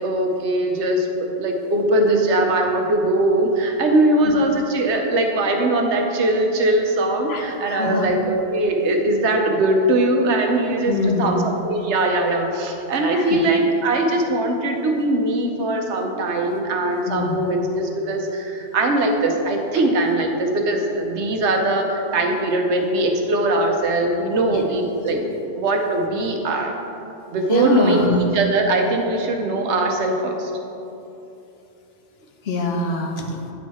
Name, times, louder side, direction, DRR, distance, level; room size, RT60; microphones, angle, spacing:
voice 1, 0.0-11.4 11.6-25.2 25.6-26.7 27.3-30.5, right 2 dB, 80° right, 3 dB, 1.1 m, -21 dB
voice 2, 7.3-8.1 10.9-11.4 13.1-13.4 17.1-17.4 24.5-24.6 27.5-28.3 32.4-33.5, left 3 dB, 65° left, 2 dB, 1.0 m, -24 dB
9.5 x 4.6 x 4.3 m, 2.8 s
omnidirectional pair, 1.2 m